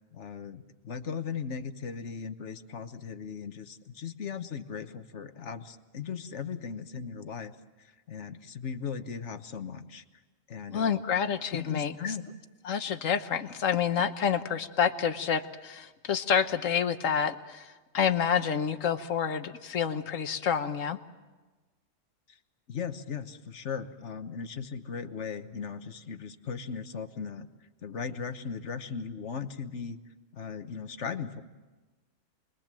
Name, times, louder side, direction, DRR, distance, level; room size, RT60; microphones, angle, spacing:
voice 1, 0.1-10.0 10.5-11.0 11.5-12.3 22.3-22.4 22.7-27.5 27.8-30.0 30.3-31.4, left 6 dB, 65° left, 10 dB, 1.4 m, -38 dB
voice 2, 10.7-12.1 12.6-21.0, left 7 dB, 80° left, 9 dB, 1.5 m, -28 dB
29.0 x 22.0 x 7.6 m, 1.2 s
omnidirectional pair, 1.3 m